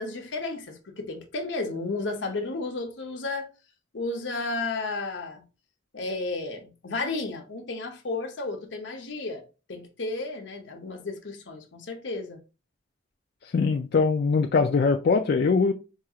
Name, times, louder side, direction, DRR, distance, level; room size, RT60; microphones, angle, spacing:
voice 1, 0.0-3.5 3.9-5.4 5.9-9.4 9.7-12.4, left 3 dB, 70° left, 0.8 m, -33 dB
voice 2, 13.4-15.7, left 4 dB, 55° left, 0.3 m, -22 dB
4.7 x 2.4 x 2.8 m
head